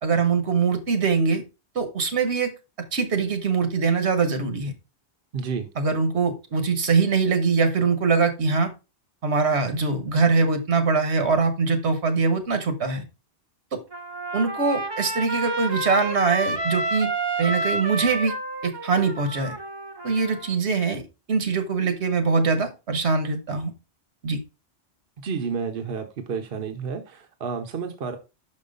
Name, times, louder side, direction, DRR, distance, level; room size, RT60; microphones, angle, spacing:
voice 1, 0.0-1.4 1.7-2.5 2.9-4.7 5.8-8.7 9.2-13.0 13.7-13.8 14.3-17.1 17.4-18.4 18.6-19.6 20.0-21.0 21.3-23.7 24.2-24.4, right 4 dB, 80° right, 1.4 m, -23 dB
voice 2, 5.3-5.7 25.2-28.2, right 5 dB, 60° right, 1.0 m, -30 dB
Trumpet, 13.9-20.5, right 2 dB, 30° right, 0.6 m, -30 dB
6.0 x 5.5 x 3.9 m
omnidirectional pair, 1.1 m